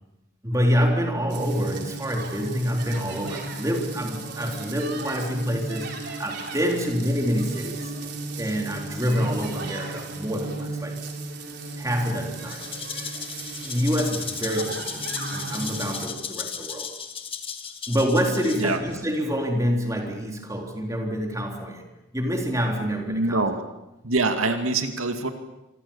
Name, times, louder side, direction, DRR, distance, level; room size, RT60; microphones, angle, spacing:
voice 1, 0.4-7.9 8.4-11.0 11.7-12.8 13.6-16.9 17.9-21.9 22.1-23.4, equal, 15° right, 2 dB, 3.7 m, -27 dB
sound 1, 1.3-16.1, right 3 dB, 55° right, 4.4 m, -35 dB
Rattle (instrument), 12.4-19.0, left 7 dB, 25° left, 1.9 m, -35 dB
voice 2, 23.1-23.6 24.0-25.3, right 3 dB, 90° right, 6 dB, 2.5 m, -24 dB
26.5 x 26.0 x 7.3 m, 0.94 s
head